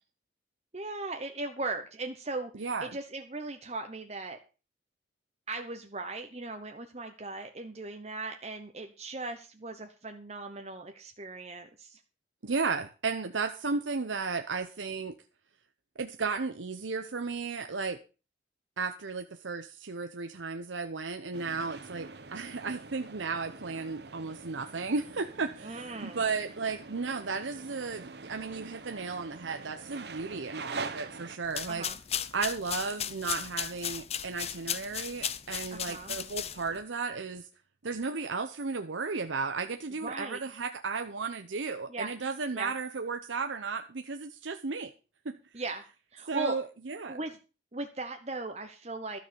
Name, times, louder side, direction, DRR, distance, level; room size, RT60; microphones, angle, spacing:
voice 1, 0.7-4.4 5.5-12.0 25.6-26.2 31.7-32.0 35.7-36.2 40.0-40.4 41.9-42.1 42.5-42.7 45.5-45.8 46.1-46.6 47.1-47.4 47.7-49.2, right 3 dB, 35° right, 5 dB, 1.0 m, -38 dB
voice 2, 2.5-2.9 12.4-15.1 16.0-18.0 18.8-31.9 32.3-37.4 37.8-44.9 45.2-45.4 46.3-47.2, right 4 dB, 90° right, 7 dB, 0.9 m, -34 dB
sound 1, 21.3-31.4, right 4 dB, 60° right, 1.1 m, -44 dB
sound 2, 31.4-36.8, left 9 dB, 35° left, 0.6 m, -36 dB
13.0 x 6.7 x 6.9 m, 0.34 s
head